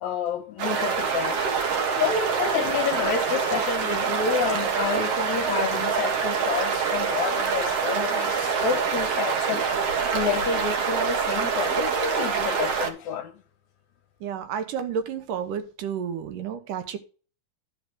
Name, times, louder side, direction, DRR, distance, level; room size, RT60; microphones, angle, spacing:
voice 1, 0.0-1.4 1.9-13.3, left 7 dB, 70° left, 1.9 m, -29 dB
sound 1, 0.6-12.9, right 6 dB, 55° right, 2.1 m, -25 dB
voice 2, 14.2-17.0, right 7 dB, 70° right, 2.5 m, -31 dB
12.0 x 4.9 x 6.1 m
omnidirectional pair, 4.1 m